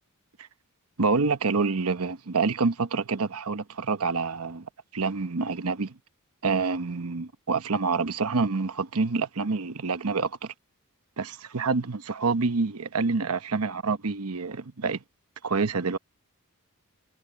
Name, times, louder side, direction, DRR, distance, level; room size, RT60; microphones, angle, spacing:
voice 1, 1.0-6.0 6.4-10.5 11.2-15.0 15.4-16.0, right 4 dB, 75° right, 1.0 m, -27 dB
head